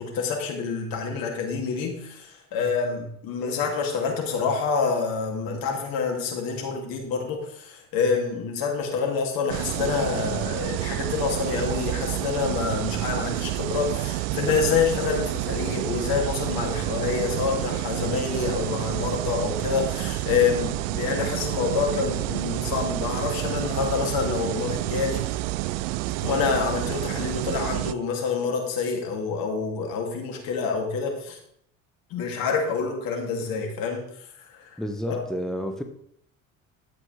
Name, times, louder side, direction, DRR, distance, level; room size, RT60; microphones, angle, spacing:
voice 1, 0.0-25.3 26.2-31.4 32.1-34.1 34.5-34.8 35.1-35.2, left 5 dB, 65° left, 1 dB, 2.7 m, -27 dB
sound 1, 9.5-27.9, right 17 dB, 75° right, 0.5 m, -29 dB
voice 2, 34.8-35.8, equal, ahead, 6 dB, 1.2 m, -30 dB
11.5 x 8.5 x 3.4 m, 0.69 s
hypercardioid pair, 60°, 38 cm